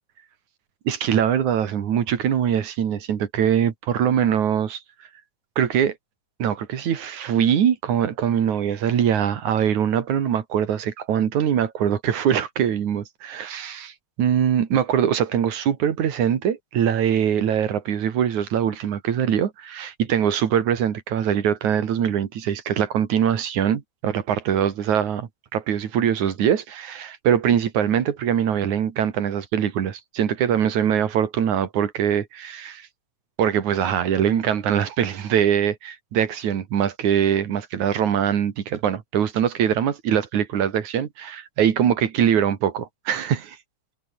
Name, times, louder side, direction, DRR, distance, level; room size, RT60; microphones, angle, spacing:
voice 1, 0.8-4.8 5.6-5.9 6.4-13.9 14.2-32.9 33.4-43.6, right 9 dB, 70° right, 3.4 m, -22 dB
omnidirectional pair, 3.5 m